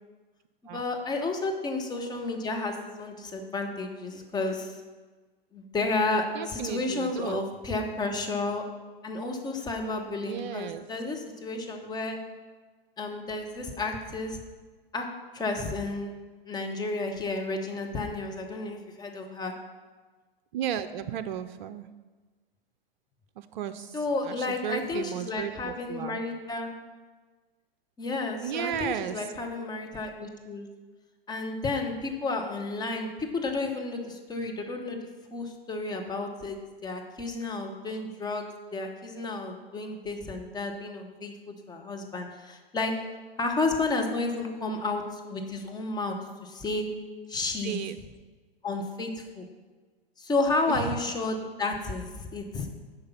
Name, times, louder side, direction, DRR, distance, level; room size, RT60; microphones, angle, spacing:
voice 1, 0.6-4.8 5.5-8.6 9.0-12.2 13.0-14.4 14.9-15.1 15.3-16.1 16.5-19.5 23.9-26.7 28.0-30.7 31.3-35.0 35.3-42.9 43.4-46.2 46.4-46.9 47.3-47.8 48.6-49.4 50.2-52.7, left 3 dB, 15° left, 3 dB, 1.0 m, -32 dB
voice 2, 6.3-7.4 10.2-10.8 20.5-21.9 23.4-24.0 24.2-26.2 28.4-29.3 47.6-48.0 50.7-51.0, right 10 dB, 50° right, 10 dB, 0.5 m, -34 dB
8.6 x 5.3 x 5.7 m, 1.3 s
figure-of-eight pair, 100°, 30 cm